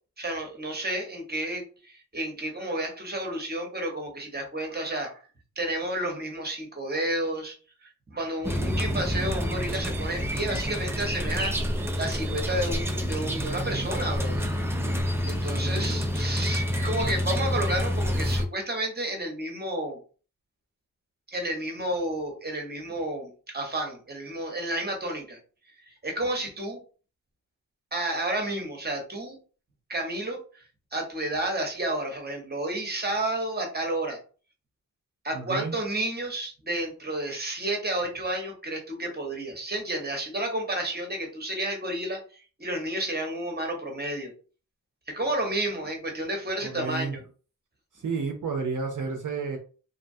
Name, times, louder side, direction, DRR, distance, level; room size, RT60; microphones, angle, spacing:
voice 1, 0.2-5.2 5.6-7.6 7.8-14.5 15.0-20.0 21.3-25.4 25.8-26.8 27.9-29.4 29.9-30.6 30.9-34.2 35.2-44.3 45.1-47.2, right 1 dB, 25° right, 2 dB, 0.9 m, -31 dB
sound 1, 8.4-18.5, equal, 5° right, 0.4 m, -28 dB
voice 2, 15.5-15.9 35.3-35.8 46.6-47.2 47.9-49.6, right 4 dB, 60° right, 2 dB, 0.5 m, -31 dB
2.7 x 2.2 x 2.6 m, 0.38 s
wide cardioid pair, 70°, 36 cm